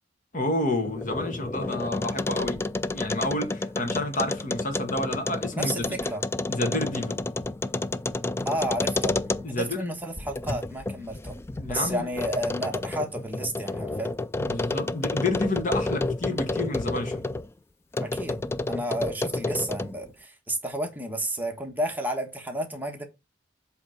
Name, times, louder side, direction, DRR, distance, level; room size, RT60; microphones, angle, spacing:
voice 1, 0.3-2.6 2.9-5.9 6.5-7.2 9.4-9.9 11.6-12.1 14.4-17.2, left 2 dB, 45° left, 1.5 m, -29 dB
sound 1, 0.7-9.7 10.2-17.5 17.9-20.0, left 2 dB, 15° left, 0.3 m, -30 dB
voice 2, 5.5-6.2 8.4-9.2 9.5-11.4 11.7-14.1 18.0-18.4 18.7-23.0, right 1 dB, 10° right, 1.3 m, -31 dB
7.9 x 3.3 x 5.7 m
head